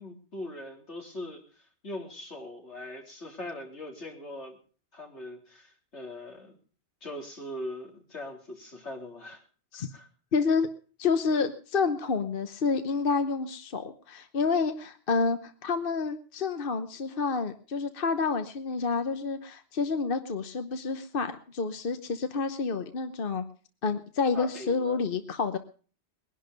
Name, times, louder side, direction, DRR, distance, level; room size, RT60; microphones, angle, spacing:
voice 1, 0.0-4.6 4.9-6.6 7.0-9.4 9.8-10.1 24.3-25.0, left 1 dB, 85° left, 1 dB, 4.1 m, -41 dB
voice 2, 10.3-10.7 11.0-23.4 23.8-25.6, left 4 dB, 55° left, 9 dB, 1.2 m, -29 dB
21.0 x 11.5 x 5.2 m, 0.42 s
omnidirectional pair, 1.1 m